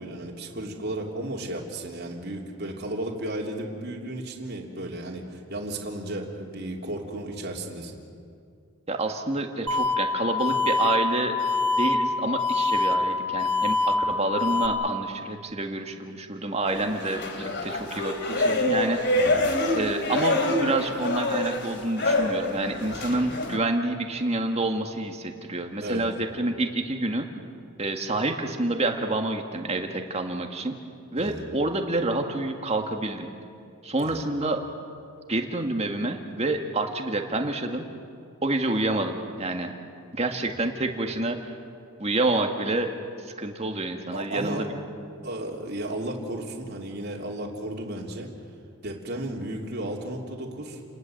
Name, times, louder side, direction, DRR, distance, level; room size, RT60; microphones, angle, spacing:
voice 1, 0.0-8.0 19.2-19.5 25.8-26.0 31.2-31.4 34.0-34.2 44.1-44.7 45.2-48.3 48.8-50.8, right 1 dB, 45° right, 0 dB, 3.1 m, -34 dB
voice 2, 8.9-11.4 11.8-19.4 19.8-27.3 27.8-30.8 31.1-33.3 33.8-34.6 35.3-37.8 38.4-39.7 40.1-41.5 42.0-42.9 43.2-44.7, right 2 dB, 30° right, 4 dB, 1.9 m, -28 dB
sound 1, 9.7-14.7, left 3 dB, 80° right, 2.5 m, -25 dB
sound 2, 16.7-23.6, left 2 dB, 50° left, 2.7 m, -26 dB
29.5 x 19.5 x 7.9 m, 2.4 s
head